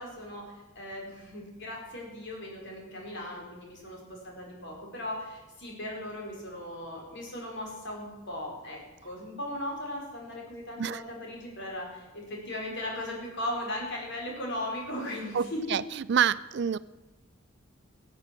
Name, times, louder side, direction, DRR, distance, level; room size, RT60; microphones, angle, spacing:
voice 1, 0.0-15.8, left 1 dB, 55° left, -1 dB, 4.6 m, -38 dB
voice 2, 16.1-16.8, right 8 dB, 50° right, 18 dB, 0.4 m, -26 dB
16.5 x 8.3 x 7.5 m, 1.1 s
head